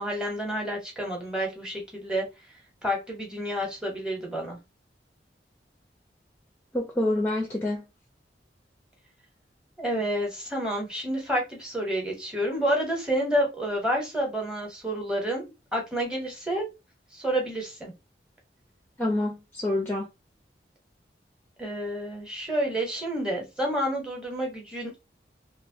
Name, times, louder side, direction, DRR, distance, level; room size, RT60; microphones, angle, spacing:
voice 1, 0.0-2.3 2.8-4.6 9.8-16.7 17.1-17.9 21.6-25.0, equal, 5° right, 0.8 m, -29 dB
voice 2, 6.7-7.8 19.0-20.1, left 1 dB, 10° left, 0.5 m, -27 dB
2.9 x 2.0 x 2.7 m
head